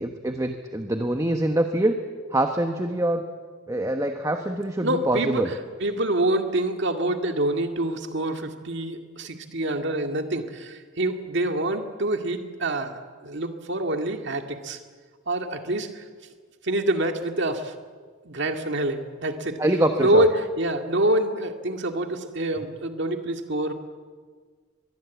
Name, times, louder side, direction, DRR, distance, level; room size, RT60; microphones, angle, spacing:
voice 1, 0.0-2.0 2.3-3.2 3.7-5.5 19.6-20.3, right 1 dB, 15° right, 6 dB, 1.1 m, -24 dB
voice 2, 4.8-5.5 5.8-14.8 15.3-16.0 16.6-17.7 18.3-19.6 20.0-20.3 20.6-23.7, right 1 dB, 60° right, 5 dB, 2.2 m, -26 dB
23.5 x 21.5 x 8.4 m, 1.6 s
head